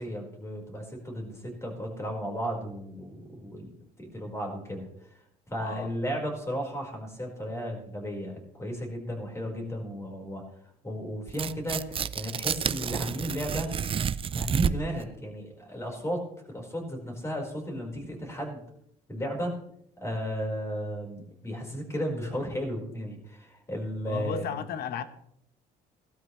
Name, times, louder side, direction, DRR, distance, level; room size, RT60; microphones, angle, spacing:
voice 1, 0.0-5.1 5.5-10.4 10.8-13.7 14.3-16.2 16.5-18.6 19.1-19.5 20.0-24.5, equal, 15° left, 4.8 m, -34 dB
Tearing, 11.3-15.0, right 8 dB, 35° right, 0.5 m, -30 dB
voice 2, 24.1-25.0, left 7 dB, 70° left, 1.2 m, -34 dB
17.5 x 12.5 x 3.3 m
cardioid pair, 110°, 17 cm